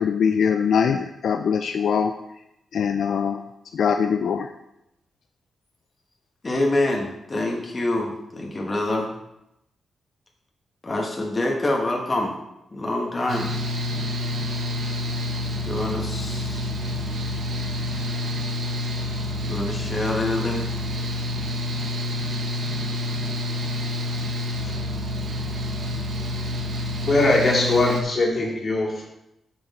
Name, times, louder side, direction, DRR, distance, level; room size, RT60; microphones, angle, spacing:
voice 1, 0.0-2.1 2.7-3.4 3.7-4.5, left 7 dB, 70° left, 6 dB, 0.4 m, -22 dB
voice 2, 6.4-9.1 10.8-12.3 12.7-13.5 15.6-16.7 19.4-20.7, left 2 dB, 25° left, -1 dB, 1.3 m, -26 dB
Mechanical fan, 13.3-28.0, left 1 dB, 60° right, 1.3 m, -28 dB
voice 3, 27.1-29.1, left 2 dB, 40° left, -3 dB, 2.3 m, -21 dB
7.5 x 6.2 x 4.2 m, 0.86 s
cardioid pair, 115°, 0 cm